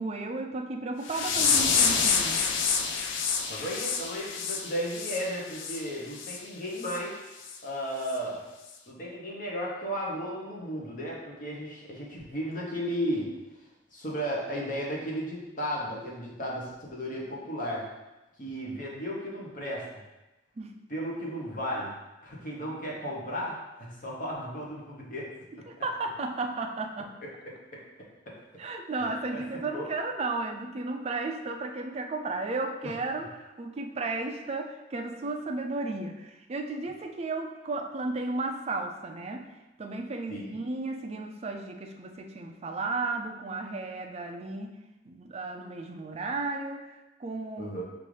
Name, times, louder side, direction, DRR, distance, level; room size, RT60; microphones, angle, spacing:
voice 1, 0.0-2.4 20.6-20.8 25.5-27.1 28.6-39.5 39.8-44.8 45.1-47.8, right 3 dB, 35° right, 3 dB, 0.4 m, -34 dB
sound 1, 1.1-5.8 6.2-6.4 6.8-7.0 7.4-7.6 8.1-8.2, left 5 dB, 80° left, 0.4 m, -27 dB
voice 2, 3.5-7.1 7.6-8.4 8.9-13.3 13.9-17.8 18.4-19.8 20.9-21.9 22.2-25.3 25.6-25.7 29.0-29.4 29.7-29.8 40.3-40.6 47.6-47.8, equal, 45° left, -3 dB, 1.0 m, -34 dB
5.4 x 2.5 x 3.2 m, 1.0 s
head